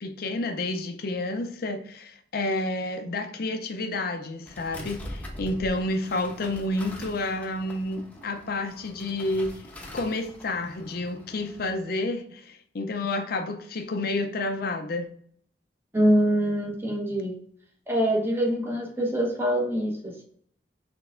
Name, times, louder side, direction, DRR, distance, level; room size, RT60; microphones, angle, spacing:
voice 1, 0.0-9.7 9.9-15.1, left 2 dB, 60° left, 6 dB, 0.5 m, -30 dB
sound 1, 4.5-11.7, left 1 dB, 10° left, 0.8 m, -43 dB
voice 2, 15.9-17.4 17.9-20.2, equal, 15° right, -1 dB, 1.0 m, -24 dB
6.0 x 3.4 x 2.5 m, 0.64 s
head